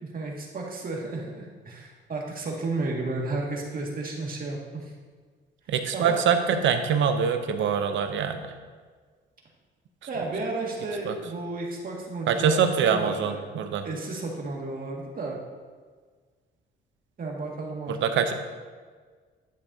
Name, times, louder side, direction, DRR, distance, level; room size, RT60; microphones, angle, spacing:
voice 1, 0.0-4.9 5.9-6.2 10.1-13.4 13.8-15.4 17.2-18.0, right 3 dB, 45° right, -1 dB, 2.0 m, -33 dB
voice 2, 5.7-8.5 11.1-11.2 12.3-13.9 17.9-18.3, right 7 dB, 75° right, 7 dB, 0.8 m, -24 dB
10.5 x 8.4 x 2.8 m, 1.5 s
cardioid pair, 90°, 20 cm